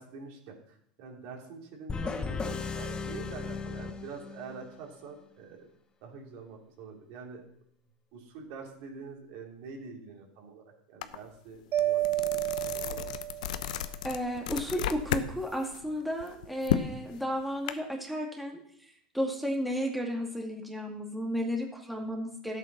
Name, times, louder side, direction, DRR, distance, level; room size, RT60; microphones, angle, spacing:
voice 1, 0.0-5.7 6.0-7.4 8.1-13.2, right 5 dB, 60° right, 1 dB, 3.3 m, -46 dB
sound 1, 1.9-4.7, left 4 dB, 20° left, 1.2 m, -36 dB
sound 2, 11.0-11.2 11.6-15.3 15.7-17.7, left 11 dB, 75° left, 0.9 m, -33 dB
Mallet percussion, 11.7-13.8, right 14 dB, 45° right, 1.2 m, -30 dB
voice 2, 14.0-22.6, equal, ahead, 0 dB, 2.4 m, -33 dB
12.5 x 8.3 x 6.2 m, 0.69 s
hypercardioid pair, 100°, 4 cm